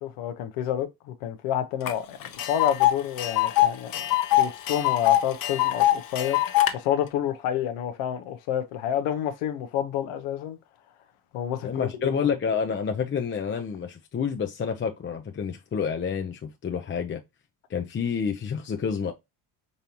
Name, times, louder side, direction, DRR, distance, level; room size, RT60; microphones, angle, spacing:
voice 1, 0.0-10.6 11.3-11.9, left 10 dB, 85° left, 0.8 m, -29 dB
Tick, 1.9-2.0 2.2-6.7, left 14 dB, 45° left, 0.8 m, -23 dB
voice 2, 11.6-17.2 17.7-19.1, left 6 dB, 25° left, 0.5 m, -29 dB
5.2 x 2.7 x 2.8 m
cardioid pair, 95°, 48 cm